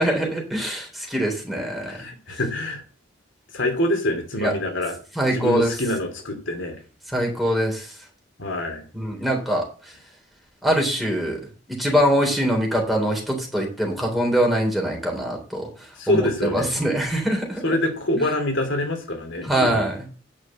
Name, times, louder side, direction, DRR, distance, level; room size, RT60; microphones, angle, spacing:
voice 1, 0.0-2.0 4.4-4.5 5.2-5.7 7.1-7.9 8.9-9.6 10.6-11.4 11.7-15.7 16.1-17.6 19.5-19.9, equal, ahead, -1 dB, 3.6 m, -23 dB
voice 2, 1.9-2.8 3.5-6.8 8.4-8.8 16.0-16.8 17.6-19.8, left 1 dB, 75° left, 4 dB, 2.9 m, -25 dB
9.8 x 6.2 x 7.6 m, 0.38 s
head